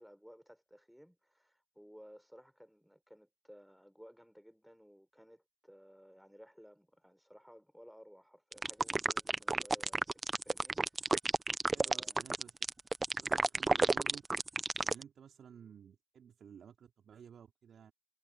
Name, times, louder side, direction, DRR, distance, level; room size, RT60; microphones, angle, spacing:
voice 1, 0.0-11.1 11.8-12.2, equal, ahead, 5.6 m, -58 dB
sound 1, 8.5-15.0, right 3 dB, 25° right, 0.8 m, -31 dB
voice 2, 11.7-12.6 13.2-14.2 14.8-17.9, right 8 dB, 60° right, 3.5 m, -55 dB
supercardioid pair, 65°, 0 cm